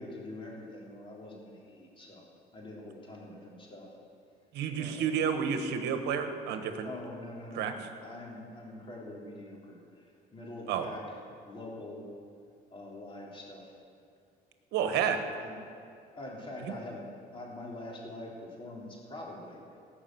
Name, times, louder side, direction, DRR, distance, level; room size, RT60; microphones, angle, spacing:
voice 1, 0.0-2.2 2.5-3.9 4.7-5.2 6.8-11.2 11.4-12.1 12.7-13.8 14.8-15.6 16.2-19.6, left 1 dB, 30° left, -3 dB, 3.7 m, -44 dB
voice 2, 4.5-6.9 7.5-7.7 10.7-10.9 14.7-15.2 16.7-16.8, right 7 dB, 80° right, 7 dB, 1.3 m, -30 dB
18.0 x 6.1 x 7.9 m, 2.5 s
cardioid pair, 110°, 17 cm